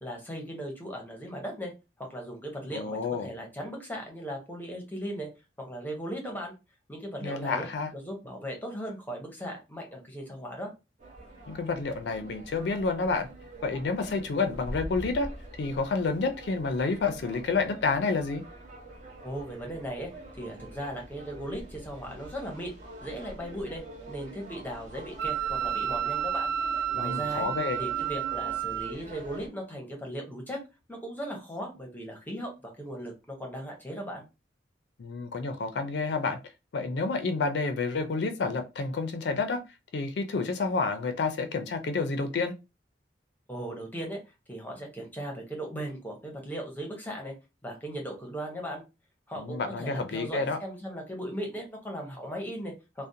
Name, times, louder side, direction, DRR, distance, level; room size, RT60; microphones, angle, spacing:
voice 1, 0.0-1.7 2.0-5.3 5.6-6.5 6.9-7.7 7.9-10.7 19.2-20.1 20.4-22.7 23.0-23.8 24.1-26.5 26.9-27.5 27.8-30.6 30.9-33.1 33.4-34.2 43.5-44.2 44.5-47.3 47.6-48.8 49.3-53.1, equal, 10° left, 0.7 m, -37 dB
voice 2, 2.7-3.3 7.2-7.9 11.5-13.3 13.6-15.3 15.6-18.4 26.9-27.8 35.0-36.4 36.7-39.6 39.9-42.5 49.4-50.6, left 4 dB, 70° left, 0.4 m, -29 dB
sound 1, 11.0-29.5, right 1 dB, 45° right, 0.8 m, -45 dB
Wind instrument woodwind instrument, 25.2-28.9, right 9 dB, 60° right, 0.3 m, -31 dB
2.4 x 2.0 x 2.6 m
head